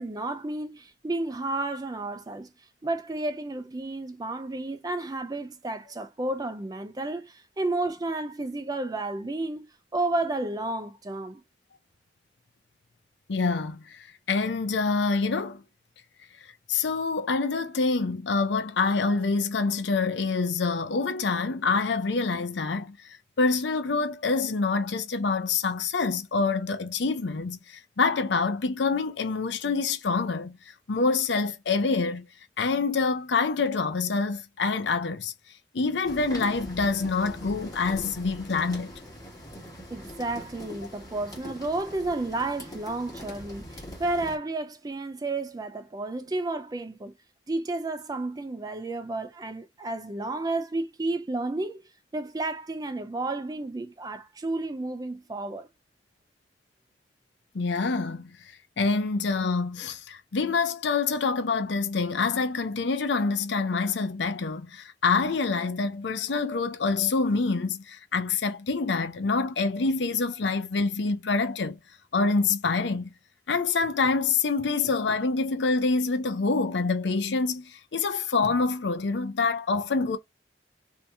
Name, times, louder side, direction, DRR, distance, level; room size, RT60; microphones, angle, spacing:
voice 1, 0.0-2.5 2.8-11.4 39.9-47.1 47.5-51.8 52.1-55.7, right 2 dB, 20° right, 0.4 m, -31 dB
voice 2, 13.3-15.6 16.7-23.1 23.4-30.6 30.9-32.3 32.6-35.3 35.7-38.9 57.5-58.3 58.8-71.8 72.1-73.1 73.5-80.2, left 4 dB, 75° left, 0.6 m, -26 dB
sound 1, 36.0-44.4, equal, 20° left, 1.4 m, -42 dB
2.7 x 2.7 x 3.4 m
head